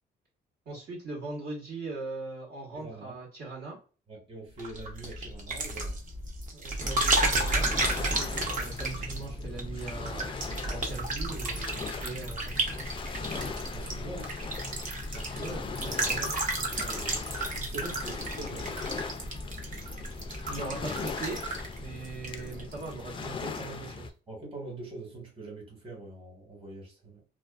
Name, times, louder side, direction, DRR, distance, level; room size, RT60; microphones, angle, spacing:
voice 1, 0.7-3.8 6.5-10.4 10.7-12.8 15.4-16.4 20.5-21.4 21.8-24.1, right 3 dB, 65° right, 1.1 m, -40 dB
voice 2, 2.7-3.1 4.1-6.0 13.4-14.3 15.1-15.5 16.8-17.1 17.5-19.0 24.3-27.2, right 2 dB, 30° right, 1.2 m, -43 dB
sound 1, 4.6-22.9 23.2-23.6, right 2 dB, 45° right, 0.7 m, -33 dB
Waves surf, 6.8-24.1, left 5 dB, 30° left, 0.3 m, -39 dB
2.4 x 2.3 x 2.3 m
cardioid pair, 125°, 19 cm